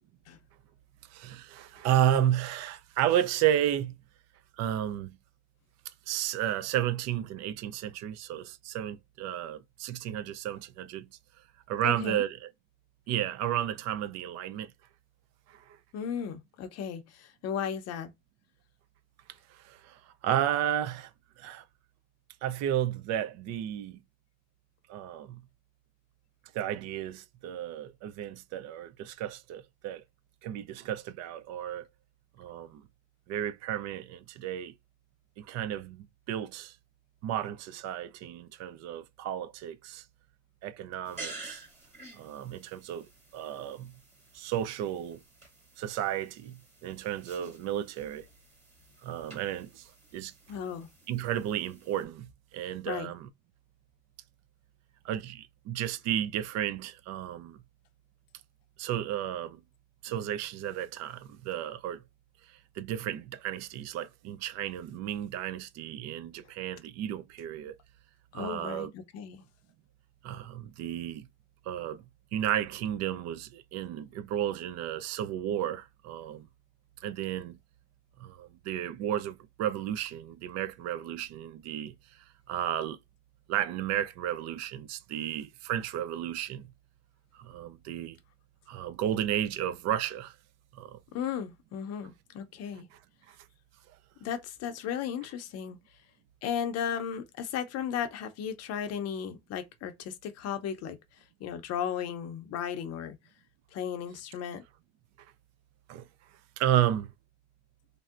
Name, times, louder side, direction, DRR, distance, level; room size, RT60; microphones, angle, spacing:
voice 1, 1.1-4.0 4.6-5.2 6.1-11.1 11.7-12.5 13.1-14.7 15.5-15.8 19.5-21.1 21.4-21.6 22.4-24.0 24.9-25.4 26.5-30.0 30.4-31.9 32.4-32.8 33.3-34.7 35.4-36.8 37.2-40.0 40.6-41.6 42.2-43.9 44.3-45.2 45.8-48.3 49.0-50.3 51.1-53.3 55.0-57.6 58.8-59.6 60.0-62.0 62.5-67.7 68.3-68.9 70.2-71.3 71.7-72.0 72.3-76.5 77.0-77.6 78.2-81.9 82.5-83.0 83.5-86.7 87.3-88.2 88.7-90.3 90.7-91.0 92.9-93.0 93.3-93.4 105.9-106.0 106.6-107.1, right 11 dB, 45° right, 0.4 m, -33 dB
voice 2, 11.8-12.2 15.9-18.1 47.4-47.5 50.5-50.9 52.9-53.1 68.3-69.4 91.1-92.9 94.2-95.8 96.4-101.0 101.4-103.2 103.7-104.6, left 8 dB, 40° left, 0.6 m, -35 dB
sound 1, 41.0-52.0, right 2 dB, 20° right, 1.5 m, -50 dB
3.2 x 2.7 x 2.4 m
supercardioid pair, 130°, 38 cm